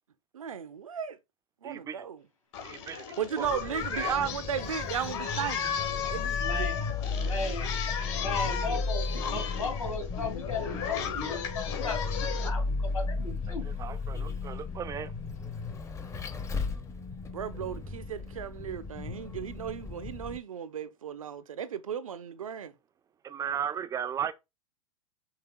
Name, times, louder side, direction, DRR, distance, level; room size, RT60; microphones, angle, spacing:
voice 1, 0.3-1.2 1.6-2.2 3.2-5.7 6.1-6.7 17.3-22.7, right 8 dB, 75° right, 0.6 m, -35 dB
voice 2, 1.6-2.0 2.6-3.5 3.7-4.2 13.5-15.1 23.2-24.3, right 8 dB, 20° right, 0.4 m, -36 dB
Singing, 2.5-12.5, left 7 dB, 55° left, 1.6 m, -35 dB
Vehicle, 3.4-20.4, left 3 dB, 15° left, 0.7 m, -35 dB
voice 3, 6.4-6.8 7.2-7.7 8.2-13.7, left 4 dB, 85° left, 2.3 m, -36 dB
5.7 x 3.3 x 2.2 m
figure-of-eight pair, 95°, 18 cm